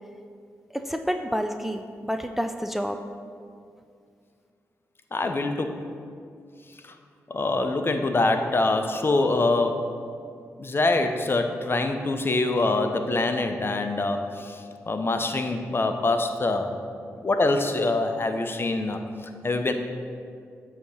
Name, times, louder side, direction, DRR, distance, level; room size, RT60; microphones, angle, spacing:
voice 1, 0.7-3.0, equal, 5° right, 6 dB, 0.4 m, -29 dB
voice 2, 5.1-5.9 7.3-10.0 10.6-16.8 17.2-19.0 19.4-19.7, left 2 dB, 40° left, 6 dB, 0.6 m, -25 dB
8.2 x 2.9 x 6.2 m, 2.3 s
supercardioid pair, 45°, 6 cm